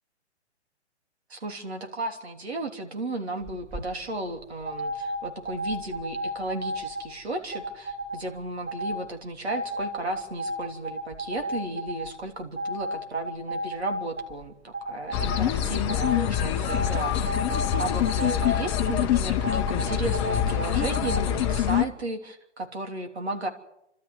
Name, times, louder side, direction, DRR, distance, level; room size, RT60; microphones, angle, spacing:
voice 1, 1.3-17.4 17.8-23.5, right 2 dB, 65° right, 5 dB, 3.4 m, -34 dB
sound 1, 3.4-3.8 4.6-7.0 7.5-8.2 8.7-9.0 9.5-12.1 12.6-14.4 14.7-15.4 15.9-16.2 16.7-19.0 19.4-21.2, right 1 dB, 15° right, 6.7 m, -32 dB
sound 2, 15.1-21.9, left 10 dB, 25° left, 1.0 m, -25 dB
29.0 x 13.0 x 8.1 m, 0.83 s
figure-of-eight pair, 130°, 35 cm